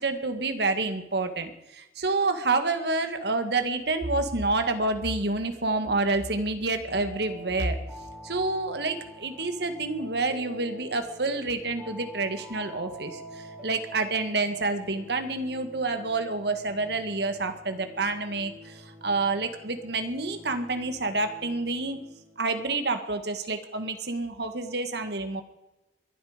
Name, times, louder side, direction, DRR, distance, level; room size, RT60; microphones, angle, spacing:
voice 1, 0.0-7.8 8.2-22.0 22.4-25.4, right 3 dB, 65° right, 8 dB, 1.9 m, -28 dB
sound 1, 6.9-22.6, equal, ahead, 5.5 m, -46 dB
21.5 x 12.0 x 5.1 m, 0.96 s
head